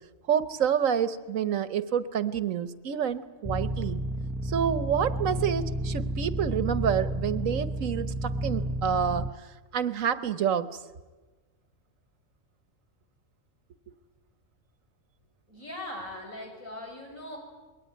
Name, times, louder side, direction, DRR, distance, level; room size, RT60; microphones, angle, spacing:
voice 1, 0.3-4.0 4.4-9.3 9.7-10.7, right 8 dB, 80° right, 13 dB, 1.4 m, -28 dB
sound 1, 3.4-9.3, right 1 dB, ahead, 0.6 m, -31 dB
voice 2, 15.5-17.4, left 1 dB, 85° left, 0 dB, 7.4 m, -40 dB
27.0 x 21.5 x 9.5 m, 1.2 s
omnidirectional pair, 1.4 m